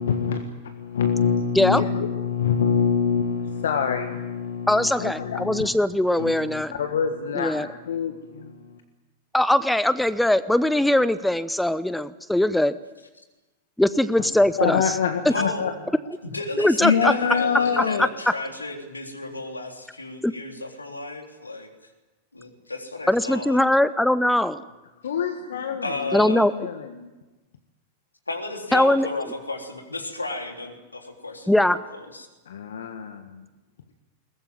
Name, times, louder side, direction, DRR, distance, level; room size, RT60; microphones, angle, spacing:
voice 1, 0.0-5.7 6.2-8.8 14.6-15.7 16.8-18.1 25.0-27.1 32.4-33.4, left 7 dB, 65° left, 7 dB, 1.6 m, -26 dB
voice 2, 4.7-6.7 7.4-7.7 9.3-12.8 13.8-14.8 16.6-17.1 17.8-17.9 20.2-20.3 23.1-24.6 26.1-26.5 28.7-29.1 31.5-31.8, left 1 dB, 5° left, 16 dB, 0.8 m, -21 dB
voice 3, 15.2-15.8 16.2-21.7 22.3-23.6 25.8-26.5 28.3-32.3, left 2 dB, 80° left, 4 dB, 3.4 m, -33 dB
22.0 x 20.0 x 9.3 m, 1.1 s
figure-of-eight pair, 90°, 0 cm